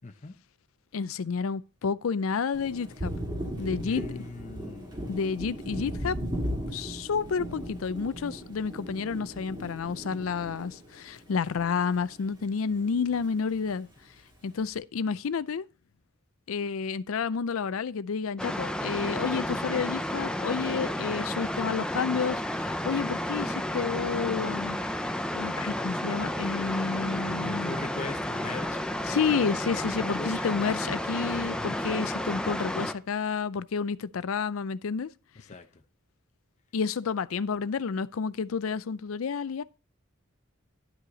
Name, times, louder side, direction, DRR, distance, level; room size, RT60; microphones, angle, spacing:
voice 1, 0.0-0.3 3.8-5.0 22.6-23.0 27.4-28.8 30.2-30.8 31.6-31.8 35.4-35.7, left 3 dB, 35° left, 0.8 m, -40 dB
voice 2, 0.9-3.1 3.6-4.2 5.1-6.2 6.7-13.9 14.4-15.7 16.5-24.8 25.3-27.7 29.1-35.1 36.7-39.6, left 5 dB, 90° left, 0.5 m, -30 dB
Thunder, 2.5-12.3 12.6-13.8, equal, 25° right, 2.7 m, -37 dB
sound 1, 18.4-32.9, left 1 dB, 5° left, 0.7 m, -31 dB
11.5 x 5.5 x 3.9 m
head